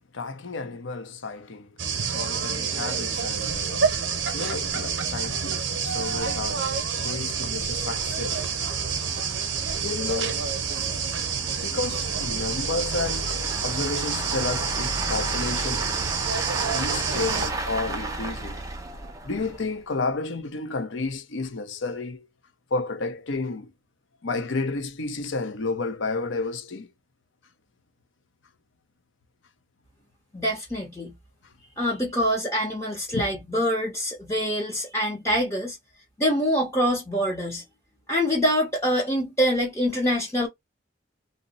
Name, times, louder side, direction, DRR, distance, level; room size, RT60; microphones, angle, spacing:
voice 1, 0.1-1.7 2.1-3.9 4.3-8.4 9.8-10.4 11.5-13.4 13.6-15.9 16.6-18.6 19.2-22.3 22.7-23.7 24.2-26.9 33.1-33.3, left 3 dB, 80° left, 0.7 m, -31 dB
sound 1, 1.8-17.5, right 6 dB, 75° right, 0.7 m, -28 dB
sound 2, 3.4-3.5 3.7-3.8 4.3-4.4 4.7-4.8 5.4-19.8, right 2 dB, 20° right, 0.6 m, -35 dB
voice 2, 30.3-31.1 31.8-35.8 36.2-37.6 38.1-40.5, equal, 15° left, 0.7 m, -25 dB
2.7 x 2.0 x 4.0 m
head